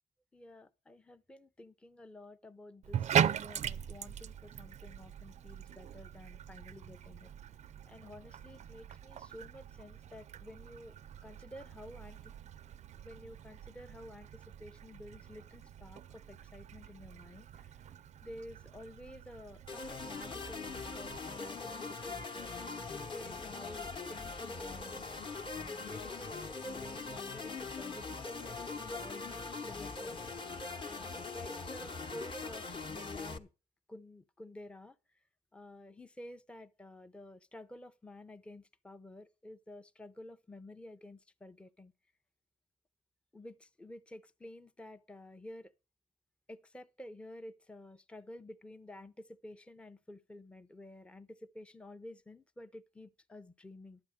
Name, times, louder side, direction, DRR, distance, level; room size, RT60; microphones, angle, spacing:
voice 1, 0.3-7.3 7.9-10.9 11.2-12.3 13.0-17.8 18.2-25.0 25.5-33.5 33.9-35.0 35.5-41.9 43.3-45.7 46.5-54.0, left 1 dB, 5° left, 0.6 m, -51 dB
Bathtub (filling or washing), 2.8-21.2, right 9 dB, 45° right, 0.5 m, -40 dB
sound 1, 19.7-33.4, left 4 dB, 30° left, 1.0 m, -42 dB
11.5 x 8.3 x 5.1 m
cardioid pair, 110°, 17 cm